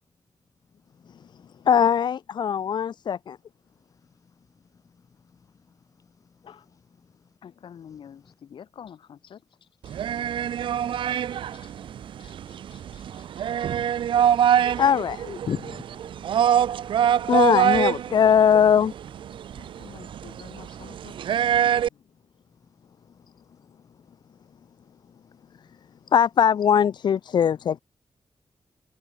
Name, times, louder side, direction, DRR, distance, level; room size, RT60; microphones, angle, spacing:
voice 1, 0.9-1.7 3.9-6.5 7.0-7.3 8.2-8.3 10.4-10.8 11.1-11.9 13.0-13.1 16.2-17.3 20.0-20.1 22.7-26.0, left 5 dB, 40° left, 2.9 m, -61 dB
voice 2, 1.7-3.4 14.8-15.8 17.3-18.9 26.1-27.8, left 8 dB, 65° left, 0.7 m, -20 dB
voice 3, 7.4-10.0 10.5-10.6 10.9-13.8 19.6-22.1, left 8 dB, 80° left, 6.6 m, -49 dB
sound 1, 9.8-21.9, right 9 dB, 85° right, 0.5 m, -25 dB
wide cardioid pair, 170°, 8 cm